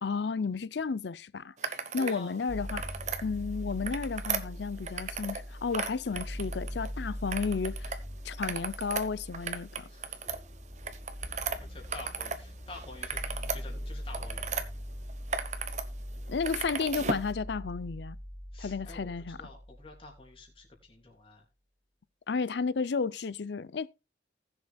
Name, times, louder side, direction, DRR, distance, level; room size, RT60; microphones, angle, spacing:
voice 1, 0.0-2.9 3.2-8.0 8.2-9.9 16.3-18.2 18.6-19.4 22.3-23.9, left 5 dB, 75° left, 0.5 m, -33 dB
sound 1, 1.6-2.2 2.5-3.2 3.7-5.4 5.7-6.9 7.3-8.0 8.3-12.4 12.7-14.6 15.1-15.8 16.1-17.3, right 5 dB, 40° right, 1.0 m, -36 dB
voice 2, 2.0-2.4 9.9-10.2 11.5-13.2 13.5-14.7 18.5-21.4, left 3 dB, 30° left, 3.5 m, -49 dB
sound 2, 2.5-20.4, equal, 10° right, 2.1 m, -41 dB
19.5 x 7.1 x 2.3 m
head